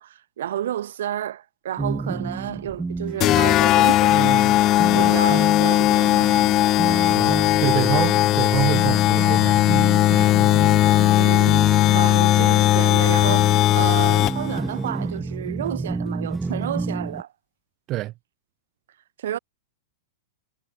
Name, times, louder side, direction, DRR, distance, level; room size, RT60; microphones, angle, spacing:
voice 1, 0.0-4.3 4.9-6.3 11.1-17.3 19.2-19.4, right 11 dB, 60° right, 1.4 m, -31 dB
sound 1, 1.8-17.2, right 3 dB, 10° right, 4.5 m, -31 dB
sound 2, 3.2-14.6, left 15 dB, 35° left, 0.3 m, -18 dB
voice 2, 4.1-4.5 4.9-5.5 7.1-10.5 17.9-18.1, right 16 dB, 35° right, 0.6 m, -28 dB
figure-of-eight pair, 100°, 0 cm